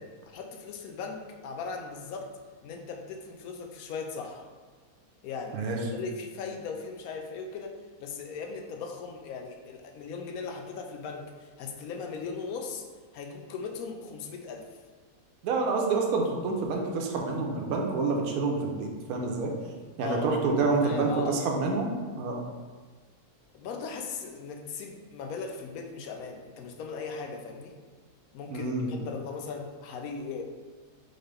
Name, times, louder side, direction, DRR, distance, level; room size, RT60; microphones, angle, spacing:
voice 1, 0.0-2.3 2.6-4.4 5.2-7.7 8.0-12.8 13.1-14.7 20.0-21.8 23.5-27.7 28.3-30.4, left 5 dB, 75° left, 3 dB, 1.0 m, -38 dB
voice 2, 15.4-19.5 20.0-22.4 28.5-28.9, right 3 dB, 75° right, 1 dB, 1.1 m, -28 dB
3.9 x 3.8 x 3.4 m, 1.4 s
omnidirectional pair, 1.6 m